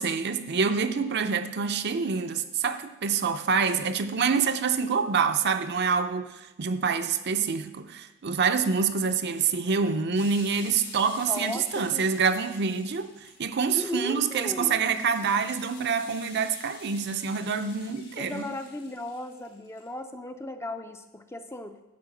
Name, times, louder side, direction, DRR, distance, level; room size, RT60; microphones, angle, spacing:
voice 1, 0.0-18.5, right 5 dB, 50° right, 9 dB, 0.6 m, -26 dB
sound 1, 10.1-19.9, left 4 dB, 75° left, 4.0 m, -49 dB
voice 2, 11.3-12.1 13.7-14.8 18.2-21.8, left 1 dB, 10° left, 7 dB, 0.5 m, -36 dB
10.5 x 4.6 x 7.8 m, 1.0 s
head